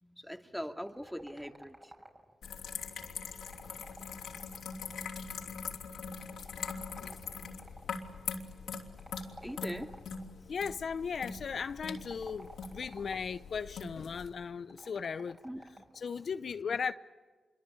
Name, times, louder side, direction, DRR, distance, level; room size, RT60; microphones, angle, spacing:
voice 1, 0.0-1.9 9.4-9.9 15.4-15.7, equal, ahead, 2.4 m, -41 dB
sound 1, 0.9-2.5 3.3-5.1 6.1-7.9 9.0-10.3 11.9-13.4 14.7-16.0, right 1 dB, 25° right, 5.9 m, -54 dB
sound 2, 2.4-14.3, left 5 dB, 85° left, 3.1 m, -42 dB
voice 2, 10.5-15.4 15.9-16.9, left 6 dB, 65° left, 0.7 m, -37 dB
26.5 x 24.0 x 8.8 m
cardioid pair, 50°, 0 cm